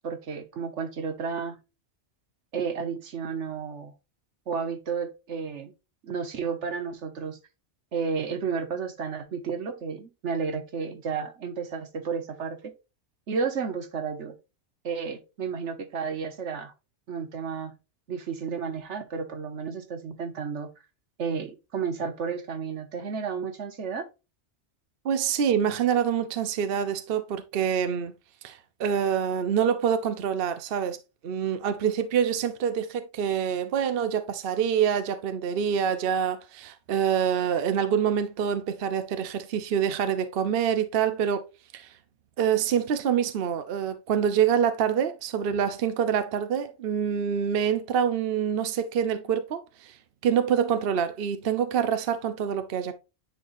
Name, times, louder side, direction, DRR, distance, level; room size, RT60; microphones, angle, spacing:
voice 1, 0.0-1.6 2.5-3.9 4.5-5.7 6.0-7.4 7.9-12.7 13.3-14.3 14.8-16.7 17.1-17.7 18.1-20.7 21.2-24.1, right 6 dB, 85° right, 1.3 m, -32 dB
voice 2, 25.0-28.1 28.4-31.0 31.2-41.4 41.7-41.9 42.4-49.9 50.2-52.9, right 8 dB, 60° right, 0.8 m, -26 dB
9.8 x 4.0 x 2.6 m
omnidirectional pair, 1.2 m